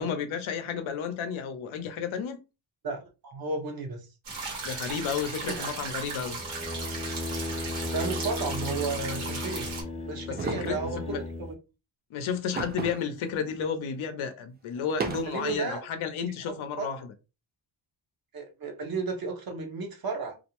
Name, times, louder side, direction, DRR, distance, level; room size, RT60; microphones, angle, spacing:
voice 1, 0.0-2.4 4.6-6.4 10.3-10.8 11.1-11.2 12.1-17.1, left 7 dB, 80° left, 0.6 m, -32 dB
voice 2, 2.8-4.1 5.5-5.7 7.9-9.7 10.1-11.2 15.3-15.8 16.8-16.9 18.3-20.4, right 4 dB, 50° right, 0.7 m, -33 dB
sound 1, 4.2-9.8, right 3 dB, 85° right, 1.1 m, -36 dB
sound 2, 6.2-11.5, left 2 dB, 15° left, 0.6 m, -35 dB
sound 3, 10.4-10.9 12.6-13.2 13.6-13.7 14.8-15.5, right 4 dB, 25° right, 0.3 m, -34 dB
2.5 x 2.0 x 2.9 m
cardioid pair, 110°, 48 cm